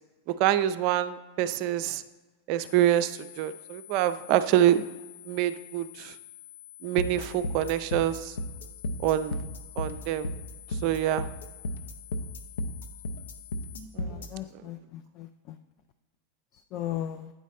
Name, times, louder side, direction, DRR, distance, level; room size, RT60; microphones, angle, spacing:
voice 1, 0.4-2.0 2.5-4.8 5.3-6.1 6.8-8.4 9.0-9.4 9.8-10.3 10.8-11.3 13.9-14.2, right 12 dB, 45° right, 12 dB, 0.4 m, -26 dB
sound 1, 2.6-13.8, left 15 dB, 85° left, 1.7 m, -49 dB
sound 2, 7.0-14.3, left 1 dB, 65° left, 0.7 m, -33 dB
voice 2, 14.0-15.6 16.7-17.3, left 12 dB, 40° left, 8 dB, 0.3 m, -37 dB
8.9 x 4.0 x 4.1 m, 1.2 s
figure-of-eight pair, 90°, 0 cm